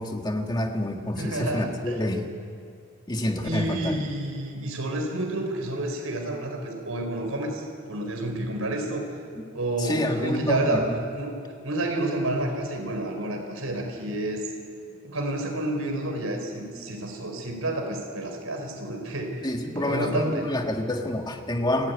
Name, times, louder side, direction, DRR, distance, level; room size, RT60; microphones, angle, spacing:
voice 1, 0.0-2.3 3.1-4.0 9.4-9.5 9.8-11.0 19.4-21.9, left 1 dB, 20° left, 3 dB, 1.8 m, -28 dB
voice 2, 1.2-1.9 3.4-9.1 9.5-10.9 11.1-11.4 11.6-14.4 15.0-20.4, right 1 dB, 75° right, 4 dB, 4.5 m, -29 dB
29.0 x 14.0 x 9.5 m, 2.5 s
head